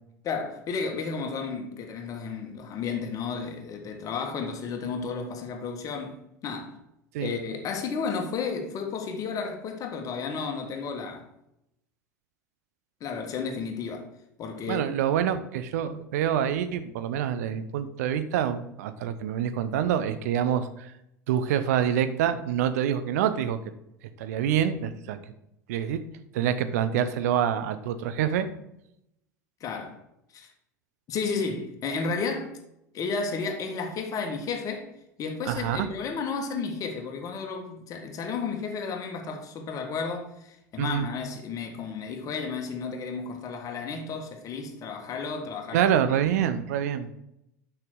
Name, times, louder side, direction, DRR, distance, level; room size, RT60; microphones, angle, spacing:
voice 1, 0.2-6.8 7.2-11.3 13.0-14.1 14.4-14.9 29.6-30.0 30.3-30.5 31.1-32.6 32.9-34.9 35.2-46.2, left 5 dB, 40° left, 1.7 m, -33 dB
voice 2, 14.7-20.9 21.3-23.6 24.2-25.2 25.7-26.0 26.3-28.5 35.5-35.9 40.8-41.1 45.7-47.1, right 9 dB, 60° right, 0.8 m, -26 dB
6.7 x 5.8 x 6.3 m
figure-of-eight pair, 75°, 9 cm